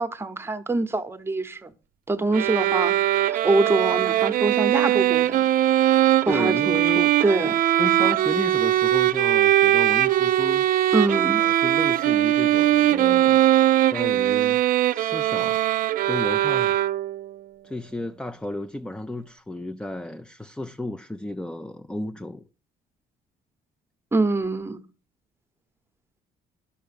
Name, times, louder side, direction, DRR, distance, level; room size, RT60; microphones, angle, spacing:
voice 1, 0.0-1.7 2.1-5.4 5.8-7.6 10.9-11.4 24.1-24.8, right 3 dB, 15° right, 0.9 m, -25 dB
sound 1, 2.3-17.3, right 13 dB, 55° right, 0.5 m, -21 dB
voice 2, 6.2-7.1 7.8-10.7 11.4-13.5 13.9-14.6 14.9-15.6 16.1-16.8 17.6-22.5, left 1 dB, 5° left, 0.4 m, -33 dB
11.0 x 5.6 x 5.1 m
cardioid pair, 110°, 17 cm